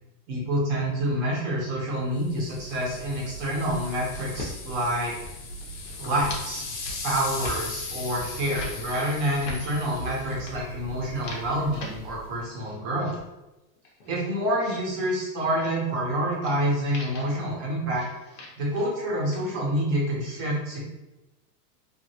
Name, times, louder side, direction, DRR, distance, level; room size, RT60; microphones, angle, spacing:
voice 1, 0.3-5.1 6.0-6.6 7.0-13.1 14.0-18.1 18.6-20.8, right 1 dB, 30° right, -4 dB, 0.9 m, -27 dB
sound 1, 2.2-12.4, left 2 dB, 90° left, 1.1 m, -38 dB
sound 2, 4.0-4.5 4.9-5.3 5.6-6.4 6.7-7.0 7.3-7.6 8.0-8.7 9.2-9.6 10.2-10.5 11.0-11.9 12.4-13.2 13.8-14.8 15.5-15.7 16.4-16.6 16.8-17.3 17.9-18.9 19.2-19.6, left 2 dB, 55° left, 0.8 m, -41 dB
2.8 x 2.5 x 2.8 m, 1.0 s
supercardioid pair, 170°, 47 cm